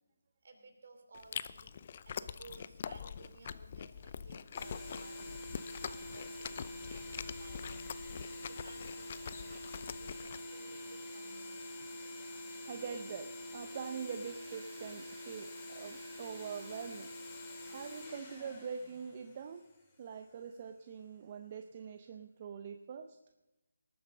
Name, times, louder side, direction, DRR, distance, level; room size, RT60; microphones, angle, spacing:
voice 1, 0.4-1.8 2.0-5.5 5.8-11.8, right 3 dB, 55° right, 5 dB, 2.9 m, -58 dB
Chewing mastication, 1.1-10.4, left 7 dB, 40° left, 0.5 m, -44 dB
sound 1, 4.5-19.8, left 1 dB, 15° left, 2.6 m, -46 dB
voice 2, 12.7-17.1 17.6-19.7 20.0-23.2, right 6 dB, 35° right, 7 dB, 0.7 m, -44 dB
19.0 x 9.2 x 5.3 m, 0.98 s
figure-of-eight pair, 165°, 0 cm